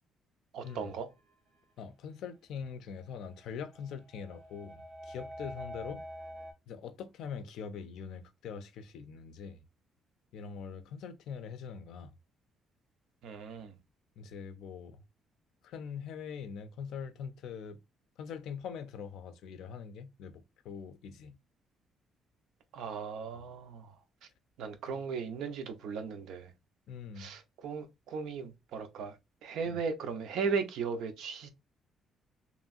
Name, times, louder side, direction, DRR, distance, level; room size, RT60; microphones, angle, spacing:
voice 1, 0.5-1.1 13.2-13.7 22.7-23.9 24.6-26.5 27.2-29.2 29.4-31.5, right 5 dB, 75° right, 0.6 m, -37 dB
sound 1, 0.6-1.2 3.1-6.5, equal, 55° right, 1.5 m, -46 dB
voice 2, 1.8-6.1 6.7-9.6 10.3-12.1 14.2-15.0 15.6-17.8 18.2-21.4 24.9-25.0 26.9-27.3 29.7-29.8, left 6 dB, 70° left, 0.4 m, -43 dB
3.0 x 2.6 x 2.4 m
cardioid pair, 175°, 0 cm